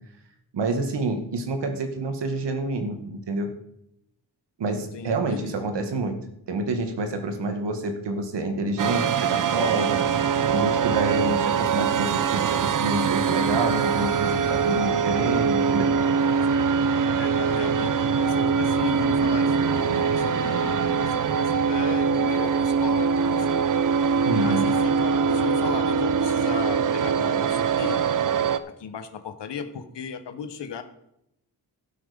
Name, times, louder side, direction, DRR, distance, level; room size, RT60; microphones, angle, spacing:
voice 1, 0.5-3.5 4.6-6.2 6.5-15.9 24.2-24.7, right 2 dB, 85° right, 6 dB, 2.0 m, -28 dB
voice 2, 4.9-5.6 17.2-23.7 24.4-28.0 28.7-30.8, left 7 dB, 85° left, 8 dB, 1.3 m, -37 dB
sound 1, 8.8-28.6, right 6 dB, 50° right, 0.7 m, -23 dB
12.0 x 7.8 x 5.2 m, 0.77 s
wide cardioid pair, 140°, 41 cm